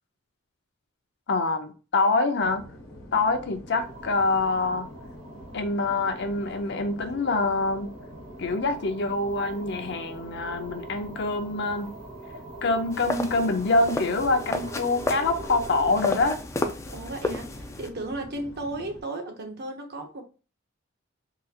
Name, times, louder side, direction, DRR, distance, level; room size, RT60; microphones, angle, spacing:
voice 1, 1.3-2.6 3.1-4.9 5.5-7.9 8.4-12.0 12.6-16.4, left 3 dB, 60° left, 0.6 m, -25 dB
sound 1, 2.4-19.0, left 1 dB, 90° left, 1.1 m, -46 dB
sound 2, 3.7-16.2, right 3 dB, 70° right, 1.6 m, -44 dB
sound 3, 12.9-17.9, left 2 dB, 15° left, 0.3 m, -32 dB
voice 2, 16.8-20.2, right 2 dB, 55° right, 0.9 m, -35 dB
3.8 x 2.4 x 2.8 m
head